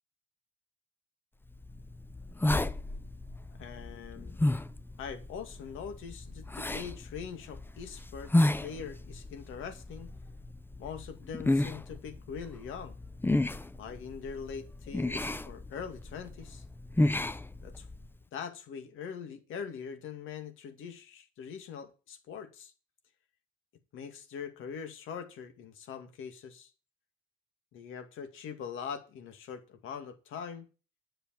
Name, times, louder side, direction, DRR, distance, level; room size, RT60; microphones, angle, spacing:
sound 1, 1.5-18.1, left 1 dB, 10° left, 0.6 m, -33 dB
voice 1, 3.6-4.4 5.0-10.1 10.8-13.0 13.8-16.6 17.6-17.9 18.3-22.7 23.9-26.7 27.7-30.7, left 7 dB, 85° left, 7 dB, 2.3 m, -42 dB
10.5 x 6.7 x 7.5 m, 0.33 s
cardioid pair, 90°, 20 cm